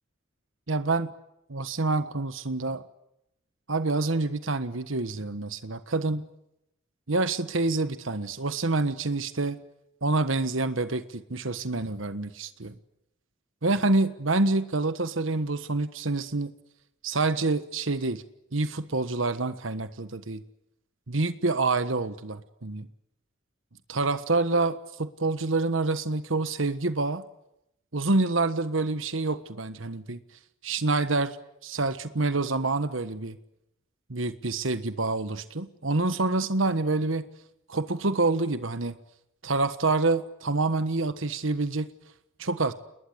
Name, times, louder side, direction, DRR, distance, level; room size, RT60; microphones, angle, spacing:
voice 1, 0.7-1.1 1.5-2.8 3.7-6.3 7.1-9.6 10.0-12.7 13.6-16.5 17.0-18.2 18.5-20.4 21.1-22.9 23.9-27.2 27.9-30.2 30.6-31.4 31.6-33.4 34.1-37.3 37.7-38.9 39.4-41.9 42.4-42.7, right 3 dB, 85° right, 11 dB, 1.4 m, -27 dB
29.5 x 20.5 x 8.1 m, 0.81 s
head